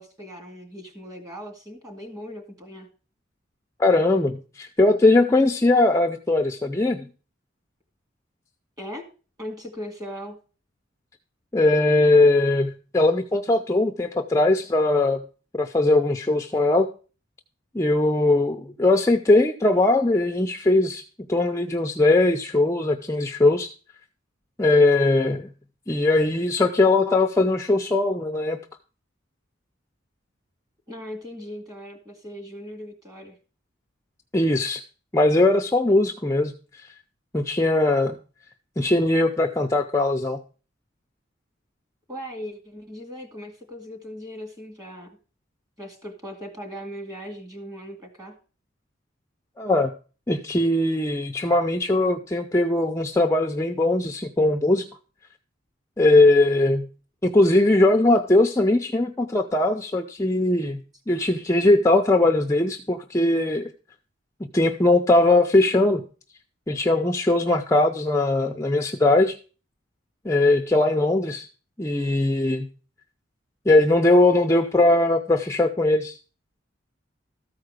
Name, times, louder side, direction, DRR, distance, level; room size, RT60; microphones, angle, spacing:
voice 1, 0.0-2.9 8.8-9.1 9.4-10.4 30.9-33.4 42.1-45.1 45.8-48.3, equal, 20° right, 3 dB, 2.3 m, -38 dB
voice 2, 3.8-7.1 11.5-15.2 15.5-16.9 17.7-21.0 21.3-23.7 24.6-25.5 25.9-28.6 34.3-34.8 35.1-36.5 37.3-38.2 38.8-40.4 49.6-49.9 50.3-54.9 56.0-56.9 57.2-60.8 61.1-63.7 64.5-66.0 66.7-69.4 70.2-71.5 71.8-72.7 73.7-76.2, left 2 dB, 15° left, 5 dB, 0.5 m, -20 dB
13.5 x 4.8 x 6.5 m, 0.37 s
head